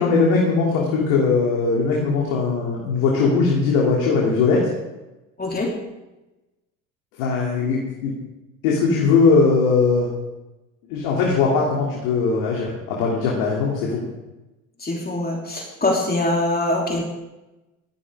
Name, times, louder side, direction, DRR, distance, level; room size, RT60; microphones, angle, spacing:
voice 1, 0.0-4.6 7.2-8.1 8.6-10.1 10.9-14.0, left 4 dB, 70° left, -3 dB, 3.2 m, -20 dB
voice 2, 5.4-5.7 14.8-17.0, left 2 dB, 20° left, -1 dB, 3.4 m, -23 dB
18.5 x 13.5 x 3.8 m, 1.0 s
hypercardioid pair, 65°, 41 cm